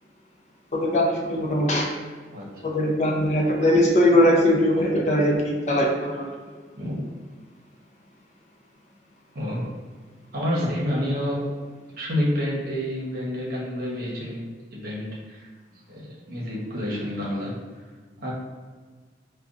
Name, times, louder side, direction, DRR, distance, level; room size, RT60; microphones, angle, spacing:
voice 1, 0.7-1.9 2.6-5.4 5.7-6.3, left 1 dB, 40° left, -2 dB, 0.5 m, -20 dB
voice 2, 9.3-9.7 10.3-11.5 12.0-14.4 14.7-17.6 18.2-18.3, equal, 55° right, -4 dB, 0.9 m, -29 dB
4.9 x 2.3 x 2.4 m, 1.5 s
head